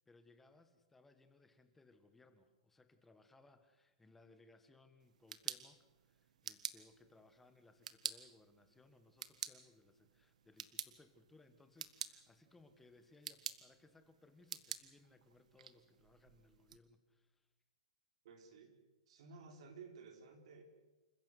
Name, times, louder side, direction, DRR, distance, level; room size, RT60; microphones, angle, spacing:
voice 1, 0.0-17.5, left 3 dB, 5° left, 10 dB, 1.3 m, -66 dB
sound 1, 5.0-16.8, right 8 dB, 75° right, 1.6 m, -50 dB
voice 2, 18.2-18.7 19.1-20.7, right 4 dB, 55° right, 4 dB, 4.6 m, -55 dB
28.0 x 15.5 x 8.2 m, 1.1 s
hypercardioid pair, 165°, 4 cm